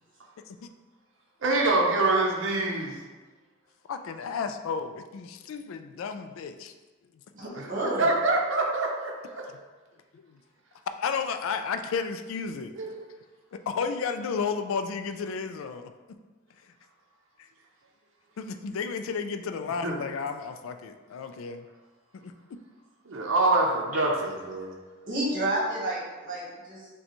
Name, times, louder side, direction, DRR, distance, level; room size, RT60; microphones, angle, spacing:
voice 1, 1.4-3.0 7.5-9.4 12.8-13.0 19.8-20.0 23.1-24.8, right 2 dB, 60° right, -1 dB, 0.6 m, -25 dB
voice 2, 3.9-6.7 10.1-10.4 11.0-12.7 13.5-15.9 18.4-21.6 22.1-22.6, left 5 dB, 70° left, 8 dB, 0.3 m, -33 dB
voice 3, 7.3-8.1 23.9-24.0 25.1-26.9, right 1 dB, 40° right, -5 dB, 1.2 m, -30 dB
6.5 x 2.3 x 2.9 m, 1.3 s
head